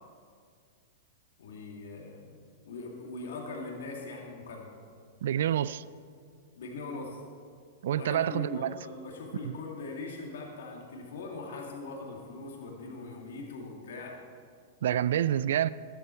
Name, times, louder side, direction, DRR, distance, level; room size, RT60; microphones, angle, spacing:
voice 1, 1.4-2.3 2.6-4.7 6.6-7.2 7.9-14.2, left 3 dB, 70° left, 0 dB, 2.4 m, -41 dB
voice 2, 5.2-5.8 7.8-8.8 9.4-9.5 14.8-15.7, right 10 dB, 65° right, 18 dB, 0.4 m, -27 dB
14.5 x 12.0 x 4.5 m, 2.1 s
hypercardioid pair, 110°, 0 cm